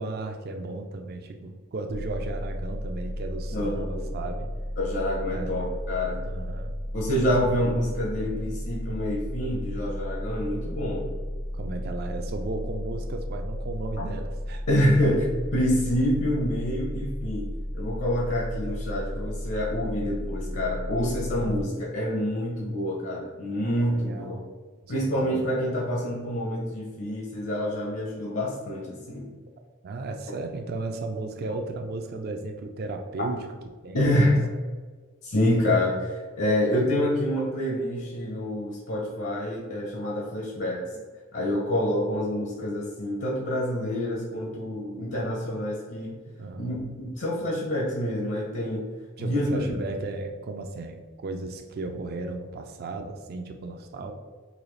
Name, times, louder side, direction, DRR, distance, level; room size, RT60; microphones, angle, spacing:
voice 1, 0.0-4.5 5.3-5.6 6.2-6.8 7.2-7.3 11.5-15.1 21.4-21.7 23.6-24.5 24.8-25.4 29.8-33.5 33.8-34.3 40.9-41.0 46.3-46.8 49.2-54.1, right 2 dB, 50° right, 4 dB, 0.3 m, -35 dB
sound 1, 1.9-21.6, equal, 80° left, 1.3 m, -34 dB
voice 2, 3.5-4.0 4.8-6.2 6.9-11.1 14.7-17.5 17.7-24.4 24.9-29.3 33.9-34.4 35.2-40.8 41.3-46.2 46.6-48.9 49.2-49.8, left 1 dB, 65° left, -3 dB, 0.7 m, -27 dB
4.1 x 2.8 x 3.1 m, 1.4 s
head